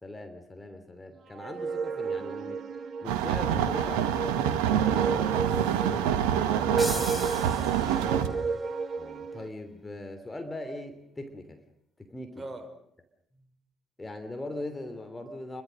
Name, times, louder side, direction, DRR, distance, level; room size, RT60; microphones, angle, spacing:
voice 1, 0.0-2.6 3.0-5.3 9.0-11.6 12.0-12.4 13.4-13.5 14.0-15.6, left 1 dB, 15° left, 7 dB, 3.0 m, -40 dB
sound 1, 1.3-9.5, right 5 dB, 45° right, 1.4 m, -33 dB
sound 2, 3.0-8.3, right 9 dB, 65° right, 1.5 m, -26 dB
voice 2, 5.8-8.4 12.4-12.7, right 3 dB, 25° right, 7 dB, 5.3 m, -42 dB
sound 3, 6.8-8.4, equal, ahead, 4.1 m, -38 dB
28.5 x 23.5 x 6.5 m, 0.72 s
figure-of-eight pair, 45°, 0 cm